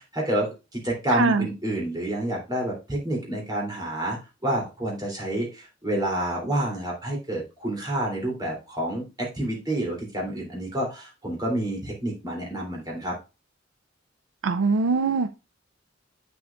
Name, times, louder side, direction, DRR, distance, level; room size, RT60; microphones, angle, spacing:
voice 1, 0.0-13.1, right 1 dB, 20° right, -2 dB, 2.8 m, -29 dB
voice 2, 1.1-1.5 14.4-15.3, right 4 dB, 70° right, 11 dB, 0.4 m, -22 dB
7.5 x 7.0 x 2.4 m, 0.28 s
head